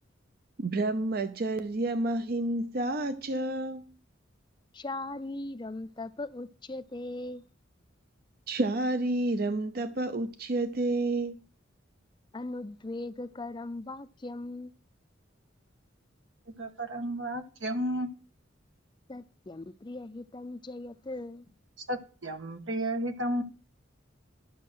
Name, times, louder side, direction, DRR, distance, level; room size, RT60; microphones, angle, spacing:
voice 1, 0.6-3.9 8.5-11.3, right 2 dB, 50° right, 0.6 m, -30 dB
voice 2, 4.7-7.4 12.3-14.7 19.1-21.6, left 2 dB, 25° left, 0.4 m, -39 dB
voice 3, 16.5-18.1 21.9-23.4, right 1 dB, 80° right, 1.4 m, -32 dB
12.0 x 6.3 x 6.2 m
head